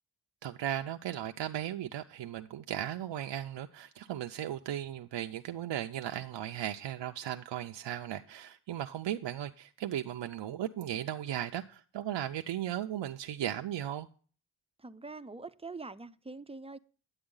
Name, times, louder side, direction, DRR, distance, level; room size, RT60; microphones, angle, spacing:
voice 1, 0.4-14.1, right 11 dB, 85° right, 0.5 m, -36 dB
voice 2, 14.8-16.8, right 3 dB, 15° right, 0.4 m, -44 dB
9.8 x 7.9 x 3.8 m
wide cardioid pair, 75°, 43 cm